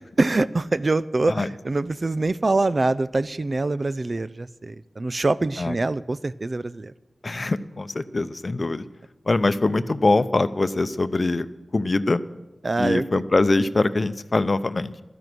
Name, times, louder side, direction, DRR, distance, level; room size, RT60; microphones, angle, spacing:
voice 1, 0.2-6.9 12.6-13.2, right 2 dB, 50° right, 16 dB, 0.5 m, -24 dB
voice 2, 7.2-8.8 9.3-11.5 11.7-12.2 12.8-14.9, left 2 dB, 50° left, 13 dB, 0.7 m, -23 dB
13.0 x 10.5 x 6.2 m, 1.1 s
cardioid pair, 45°, 0 cm